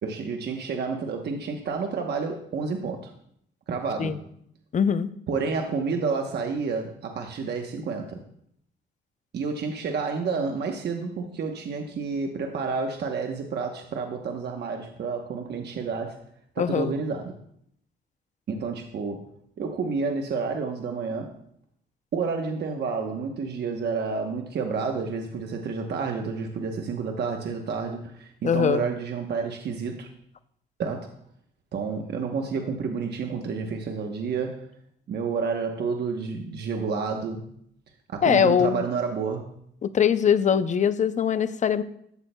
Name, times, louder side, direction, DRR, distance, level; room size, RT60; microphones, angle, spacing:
voice 1, 0.0-3.1 3.7-4.2 5.3-8.2 9.3-16.2 16.5-17.4 18.5-19.3 19.6-21.4 22.1-30.1 30.8-31.1 31.7-34.7 35.1-37.5 38.1-39.5, right 5 dB, 55° right, 3 dB, 1.0 m, -30 dB
voice 2, 4.7-5.1 16.6-16.9 28.4-28.8 38.2-38.8 39.8-41.8, left 8 dB, 40° left, 13 dB, 0.6 m, -22 dB
14.0 x 8.5 x 2.3 m, 0.71 s
cardioid pair, 90°, 20 cm